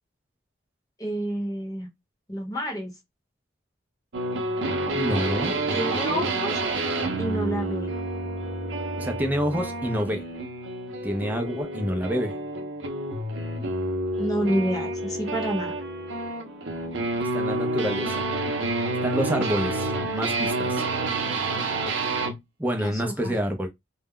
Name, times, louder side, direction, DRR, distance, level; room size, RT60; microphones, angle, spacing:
voice 1, 1.0-1.9 2.3-2.9 5.7-6.6 7.2-7.9 14.2-15.7 22.8-23.4, equal, 20° left, 0.8 m, -29 dB
sound 1, 4.1-22.4, right 2 dB, 70° right, 0.6 m, -29 dB
voice 2, 4.9-5.5 9.0-10.2 11.0-12.3 17.2-18.3 19.0-20.8 22.6-23.7, equal, 10° right, 0.4 m, -28 dB
2.2 x 2.0 x 3.5 m
head